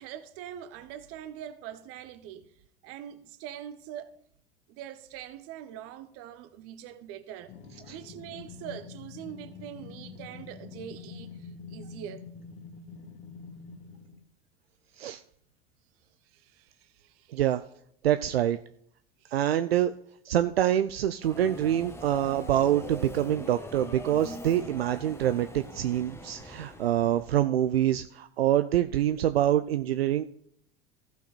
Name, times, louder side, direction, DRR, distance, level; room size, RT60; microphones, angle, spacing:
voice 1, 0.0-2.5 2.8-4.2 4.7-7.5 7.9-12.3 16.2-17.4 19.2-19.4, right 10 dB, 50° right, 1.1 m, -43 dB
sound 1, 7.5-14.2, left 5 dB, 45° left, 1.7 m, -46 dB
voice 2, 17.3-17.6 18.0-18.6 19.3-19.9 20.3-30.2, right 11 dB, 75° right, 0.5 m, -26 dB
Subway metro underground, 21.2-27.4, left 1 dB, 10° left, 1.4 m, -43 dB
15.0 x 5.8 x 4.2 m
figure-of-eight pair, 75°, 30 cm